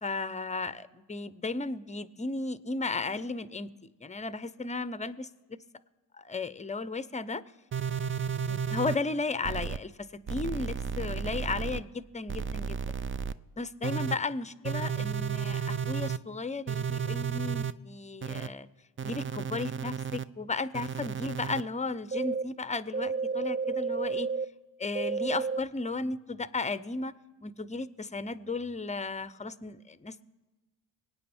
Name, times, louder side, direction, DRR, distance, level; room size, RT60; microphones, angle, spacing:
voice 1, 0.0-3.7 4.0-5.3 6.1-7.4 7.9-8.0 8.5-12.8 13.6-18.7 19.0-24.3 24.8-27.1 27.4-30.2, left 3 dB, 15° left, 16 dB, 0.7 m, -35 dB
sound 1, 7.7-8.9 9.4-9.8 10.3-11.8 12.3-13.3 13.8-14.1 14.6-16.2 16.7-17.7 18.2-18.5 19.0-20.2 20.7-21.6 22.1-22.4 22.9-24.4 24.9-25.6, right 6 dB, 25° right, 0.5 m, -32 dB
24.0 x 9.0 x 4.4 m, 1.2 s
supercardioid pair, 50°, 49 cm